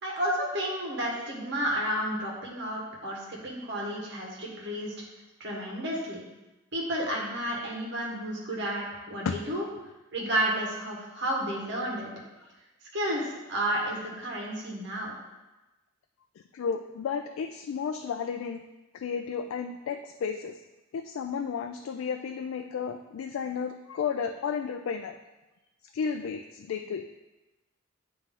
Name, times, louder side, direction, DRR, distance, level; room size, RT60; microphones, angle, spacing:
voice 1, 0.0-4.9 5.4-6.2 6.7-9.6 10.1-12.1 12.9-15.2, right 1 dB, 60° right, -3 dB, 1.5 m, -31 dB
voice 2, 16.5-18.6 18.9-20.6 20.9-25.2 25.9-27.0, left 6 dB, 80° left, 6 dB, 0.3 m, -33 dB
9.0 x 3.1 x 3.7 m, 1.1 s
head